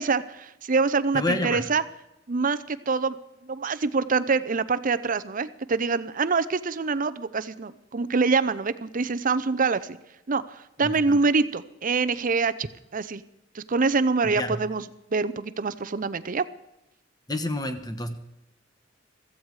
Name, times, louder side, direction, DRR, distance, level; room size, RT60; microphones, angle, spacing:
voice 1, 0.0-1.8 2.3-3.2 3.5-10.0 10.3-13.2 13.5-14.8 15.1-16.5, right 4 dB, 45° right, 14 dB, 0.7 m, -25 dB
voice 2, 1.1-1.6 10.8-11.2 14.4-14.6 17.3-18.2, left 1 dB, 20° left, 8 dB, 1.4 m, -29 dB
15.5 x 14.5 x 4.9 m, 0.89 s
head